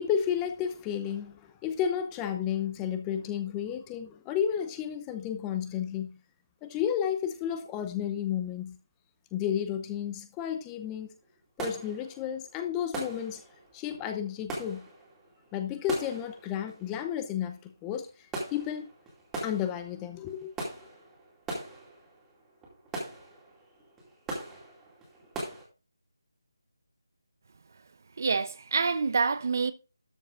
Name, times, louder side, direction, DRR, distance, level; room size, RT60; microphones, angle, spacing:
voice 1, 0.0-6.2 6.6-8.8 9.3-11.1 11.6-13.4 13.7-14.9 15.5-18.9 19.4-20.5, left 9 dB, 15° left, 0.7 m, -32 dB
sound 1, 10.5-10.7 11.0-25.6, right 2 dB, 10° right, 2.4 m, -41 dB
voice 2, 28.2-29.7, right 4 dB, 50° right, 0.7 m, -27 dB
13.0 x 5.4 x 3.7 m
figure-of-eight pair, 160°, 2 cm